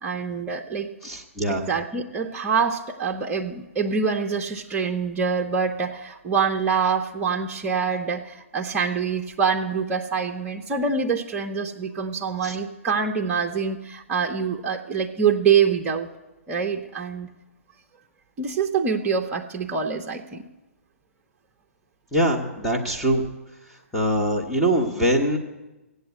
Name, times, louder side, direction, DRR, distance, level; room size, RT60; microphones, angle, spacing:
voice 1, 0.0-0.9 1.5-16.1 16.5-17.3 18.4-20.5, right 6 dB, 15° right, 2 dB, 0.8 m, -25 dB
voice 2, 1.0-1.6 12.4-12.5 22.1-23.2 23.9-25.4, right 1 dB, 5° left, -2 dB, 1.3 m, -23 dB
15.5 x 8.2 x 8.1 m, 1.0 s
figure-of-eight pair, 125°, 8 cm